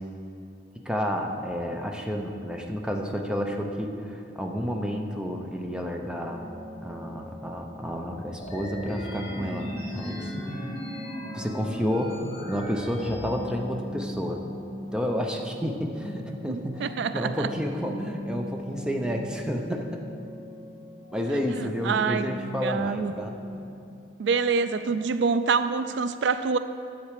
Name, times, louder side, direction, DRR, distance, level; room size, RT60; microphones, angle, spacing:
voice 1, 0.8-6.4 6.8-10.3 11.3-14.4 14.9-20.0 21.1-23.4, equal, 5° right, 2 dB, 0.7 m, -30 dB
sound 1, 6.2-23.6, left 1 dB, 30° right, 1.5 m, -40 dB
sound 2, 8.4-13.4, equal, 35° left, 2.4 m, -37 dB
voice 2, 16.5-17.5 21.5-22.3 22.6-23.1 24.2-26.6, right 5 dB, 70° right, 11 dB, 0.3 m, -26 dB
10.0 x 7.8 x 4.9 m, 2.7 s
head